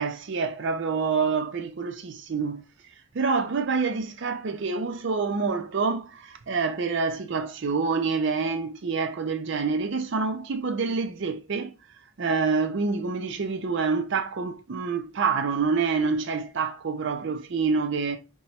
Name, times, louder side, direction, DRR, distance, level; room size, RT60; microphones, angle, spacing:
voice 1, 0.0-2.6 3.1-11.7 12.2-18.2, right 4 dB, 55° right, 0.5 m, -27 dB
4.1 x 2.3 x 3.0 m
head